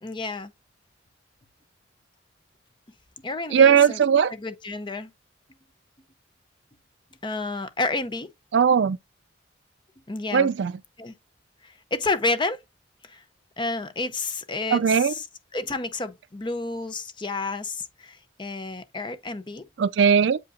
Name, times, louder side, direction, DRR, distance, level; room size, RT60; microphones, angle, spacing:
voice 1, 0.0-0.5 3.2-4.0 4.3-5.1 7.2-8.3 10.1-10.5 11.0-11.1 11.6-12.6 13.0-13.2 13.6-15.3 15.5-19.7, left 3 dB, 25° left, 0.6 m, -30 dB
voice 2, 3.5-4.3 8.5-9.0 10.3-10.7 14.7-15.1 19.8-20.4, right 7 dB, 65° right, 0.4 m, -18 dB
7.7 x 5.2 x 2.6 m
head